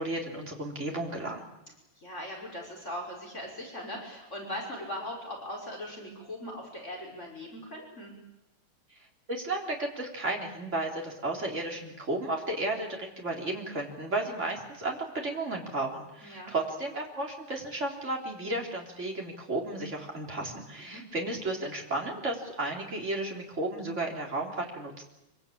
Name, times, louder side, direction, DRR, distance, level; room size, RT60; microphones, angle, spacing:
voice 1, 0.0-1.4 9.3-25.0, right 2 dB, 30° right, 0 dB, 4.1 m, -33 dB
voice 2, 2.0-8.1 16.2-16.5 20.8-21.0, left 1 dB, 30° left, 0 dB, 5.8 m, -40 dB
25.0 x 24.5 x 8.7 m, 0.90 s
omnidirectional pair, 2.3 m